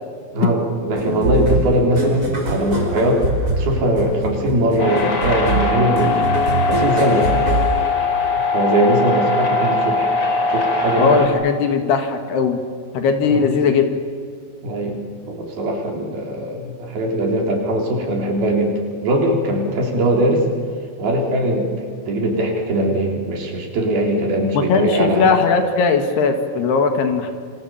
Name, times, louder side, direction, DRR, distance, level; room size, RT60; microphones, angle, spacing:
voice 1, 0.3-3.3 3.6-6.2 6.7-7.3 8.5-10.1 10.5-11.2 13.2-13.5 14.6-15.0 15.3-18.7 19.0-20.5 21.0-21.7 22.1-25.3, right 1 dB, 65° right, 1 dB, 5.8 m, -20 dB
sound 1, 1.0-8.6, right 1 dB, 20° right, 4.0 m, -23 dB
sound 2, 4.8-11.3, left 3 dB, 30° left, 2.9 m, -20 dB
voice 2, 11.0-12.6 12.9-13.9 24.5-27.3, left 5 dB, 70° left, 6 dB, 3.8 m, -18 dB
27.5 x 26.0 x 7.2 m, 2.1 s
omnidirectional pair, 4.9 m